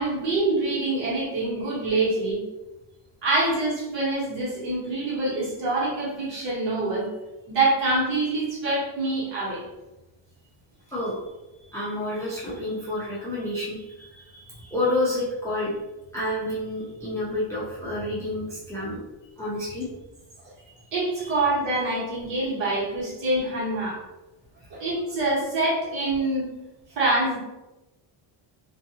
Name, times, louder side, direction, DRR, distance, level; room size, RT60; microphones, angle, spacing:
voice 1, 0.0-2.4 3.2-7.1 7.5-9.6 20.9-24.0 24.7-26.5 26.9-27.4, right 2 dB, 60° right, -6 dB, 1.3 m, -25 dB
voice 2, 11.7-15.8 16.1-19.0 19.4-19.9 21.2-21.4, left 1 dB, 5° left, -7 dB, 0.5 m, -29 dB
2.5 x 2.4 x 2.8 m, 1.0 s
cardioid pair, 155°, 49 cm